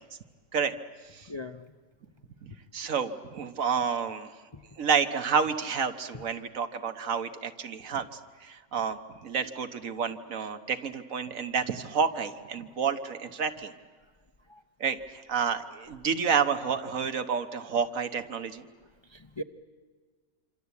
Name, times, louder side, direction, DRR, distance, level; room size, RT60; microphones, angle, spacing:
voice 1, 1.3-1.6 2.8-2.9 4.5-4.6 6.1-6.2 9.3-9.5 14.5-14.6 19.1-19.4, left 1 dB, 25° left, 8 dB, 0.6 m, -40 dB
voice 2, 2.4-4.3 4.8-8.1 8.4-13.7 14.8-18.6, right 6 dB, 70° right, 9 dB, 1.6 m, -29 dB
26.5 x 26.5 x 8.3 m, 1.5 s
omnidirectional pair, 1.5 m